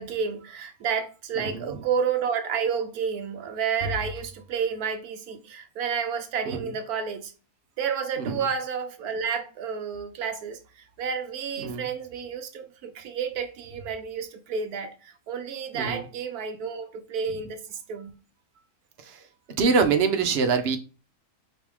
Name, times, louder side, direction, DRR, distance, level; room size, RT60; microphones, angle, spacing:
voice 1, 0.0-7.3 7.8-18.1, right 6 dB, 80° right, 1.2 m, -30 dB
voice 2, 1.4-1.8 6.4-6.7 8.2-8.5 11.6-11.9 15.7-16.0 19.0-19.2 19.6-20.8, right 5 dB, 50° right, 0.9 m, -25 dB
4.8 x 3.0 x 3.5 m
omnidirectional pair, 1.6 m